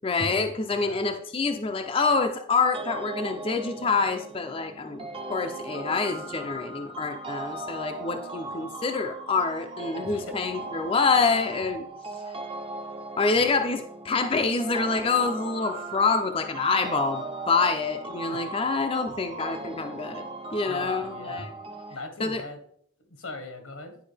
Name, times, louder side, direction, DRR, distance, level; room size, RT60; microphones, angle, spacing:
voice 1, 0.0-11.8 13.2-21.5 22.2-22.4, left 4 dB, 25° left, 6 dB, 0.4 m, -26 dB
voice 2, 0.7-1.0 9.9-10.4 18.3-18.4 20.7-21.5 21.9-22.6 23.1-24.0, left 2 dB, 90° left, 6 dB, 1.4 m, -40 dB
Happy Organ Bell Loop, 2.7-22.0, right 2 dB, 25° right, 0.6 m, -38 dB
10.0 x 4.8 x 3.4 m, 0.64 s
head